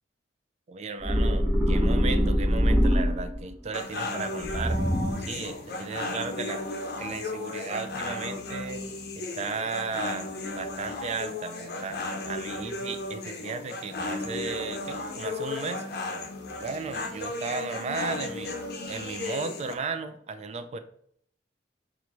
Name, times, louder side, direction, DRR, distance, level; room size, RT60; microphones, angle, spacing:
voice 1, 0.7-4.8 5.2-6.6 7.0-8.8 9.2-10.3 10.5-12.0 12.3-15.9 16.6-18.6 18.9-20.8, right 4 dB, 40° right, 9 dB, 0.3 m, -35 dB
sound 1, 1.0-3.5 4.4-5.4, equal, 10° right, 0.8 m, -23 dB
sound 2, 3.7-19.7, left 2 dB, 60° left, 0.5 m, -35 dB
4.6 x 2.5 x 2.9 m, 0.64 s
head